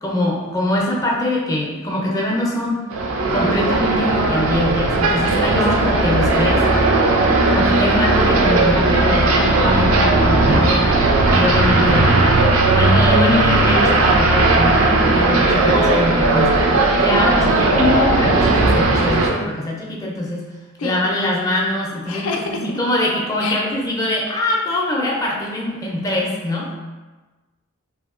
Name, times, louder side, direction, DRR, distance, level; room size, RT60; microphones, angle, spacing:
voice 1, 0.0-2.8 3.3-6.6 7.5-11.0 11.3-12.3 12.6-20.5 20.8-26.7, left 1 dB, 15° left, -4 dB, 0.4 m, -23 dB
sound 1, 2.9-19.3, right 2 dB, 75° right, 0.4 m, -16 dB
voice 2, 11.8-12.4 20.8-20.9 22.1-22.6 23.4-23.6, left 4 dB, 85° left, 1 dB, 0.4 m, -26 dB
2.7 x 2.6 x 2.4 m, 1.2 s
head